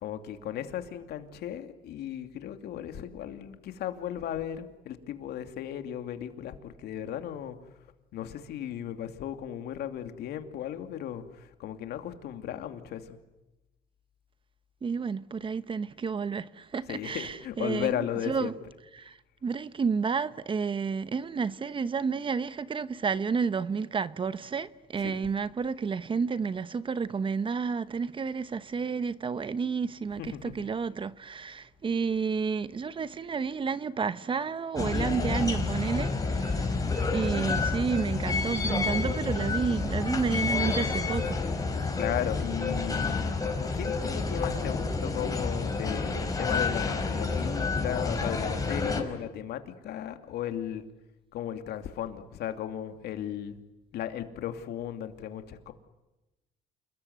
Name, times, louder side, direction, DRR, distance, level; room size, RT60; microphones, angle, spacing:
voice 1, 0.0-7.6 8.1-13.2 16.9-18.5 25.0-25.2 30.2-30.6 42.0-50.8 51.3-53.6 53.9-55.7, left 10 dB, 75° left, 2.7 m, -36 dB
voice 2, 14.8-18.5 18.9-42.0, right 5 dB, 30° right, 0.9 m, -31 dB
sound 1, 34.8-49.0, left 4 dB, 20° left, 5.1 m, -29 dB
29.0 x 21.0 x 9.5 m
cardioid pair, 110°, 17 cm